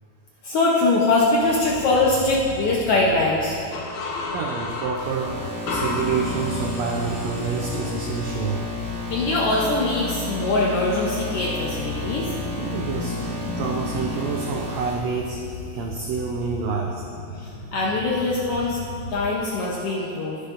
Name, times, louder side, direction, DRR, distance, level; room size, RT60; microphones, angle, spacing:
voice 1, 0.4-3.6 9.1-12.3 17.4-18.8 19.1-20.4, left 2 dB, 90° left, -4 dB, 1.2 m, -22 dB
sound 1, 1.1-19.3, left 3 dB, 55° left, 1.2 m, -38 dB
sound 2, 3.7-7.3, left 3 dB, 70° left, 2.1 m, -32 dB
voice 2, 4.3-8.7 12.6-17.0, right 4 dB, 80° right, 0 dB, 1.5 m, -28 dB
sound 3, 5.0-14.9, left 2 dB, 55° right, 2.7 m, -32 dB
19.0 x 6.6 x 2.6 m, 3.0 s
omnidirectional pair, 3.8 m